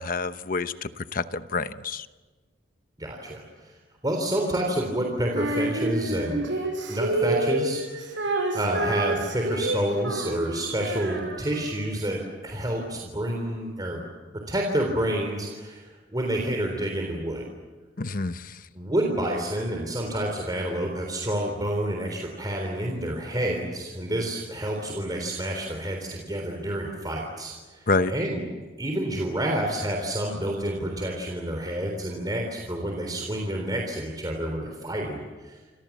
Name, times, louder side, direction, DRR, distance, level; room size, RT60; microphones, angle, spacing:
voice 1, 0.0-2.1 18.0-18.6 27.9-28.1, left 3 dB, 50° left, 11 dB, 1.0 m, -28 dB
voice 2, 3.0-3.7 4.0-6.4 6.9-8.3 8.5-14.0 14.5-17.5 18.8-28.5 28.8-35.6, right 1 dB, 20° right, 1 dB, 3.7 m, -29 dB
Female singing, 5.3-11.8, right 2 dB, 80° right, 6.9 m, -29 dB
29.0 x 26.0 x 7.3 m, 1.3 s
head